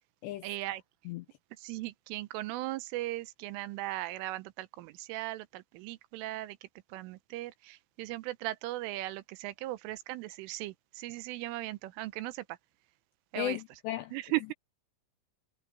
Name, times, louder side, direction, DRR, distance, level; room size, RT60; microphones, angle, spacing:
voice 1, 0.4-0.8 1.6-6.6 6.9-12.4 13.3-13.6 14.1-14.5, right 17 dB, 85° right, 3.3 m, -38 dB
voice 2, 13.4-14.1, left 12 dB, 85° left, 2.5 m, -35 dB
omnidirectional pair, 5.8 m